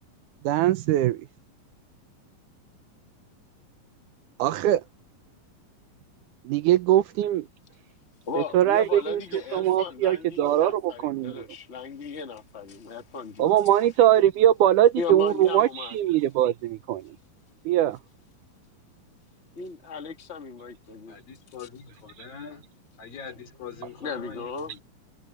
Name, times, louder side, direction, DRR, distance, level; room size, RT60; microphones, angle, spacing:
voice 1, 0.4-1.2 4.4-4.8 6.5-7.5 8.4-9.2 9.5-11.4 13.4-17.0 17.7-18.0, right 12 dB, 75° right, 2.0 m, -21 dB
voice 2, 8.3-13.6 15.0-16.0 19.6-21.2 21.6-21.7 24.0-24.7, left 5 dB, 25° left, 1.8 m, -36 dB
voice 3, 21.1-22.6 23.0-24.8, left 7 dB, 85° left, 6.0 m, -43 dB
omnidirectional pair, 4.0 m